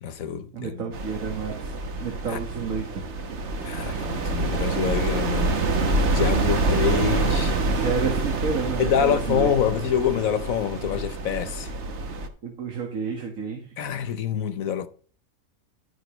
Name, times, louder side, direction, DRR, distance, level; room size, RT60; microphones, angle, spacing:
voice 1, 0.0-0.9 2.3-2.4 3.6-7.6 8.8-11.7 13.8-14.9, left 8 dB, 85° left, 1.4 m, -26 dB
voice 2, 0.5-3.0 7.7-9.5 12.4-13.7, right 5 dB, 75° right, 2.0 m, -30 dB
sound 1, 0.9-12.3, right 3 dB, 55° right, 1.5 m, -26 dB
12.0 x 9.6 x 3.2 m
omnidirectional pair, 1.4 m